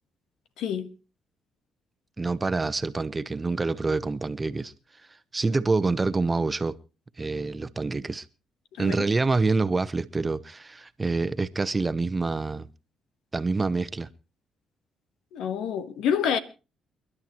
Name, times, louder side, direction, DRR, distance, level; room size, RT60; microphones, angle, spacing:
voice 1, 0.6-0.9 8.8-9.1 15.3-16.4, left 8 dB, 85° left, 1.5 m, -27 dB
voice 2, 2.2-4.7 5.3-6.7 7.2-8.3 8.8-12.7 13.3-14.1, right 3 dB, 25° right, 1.0 m, -26 dB
29.0 x 11.5 x 3.0 m
cardioid pair, 90°, 0 cm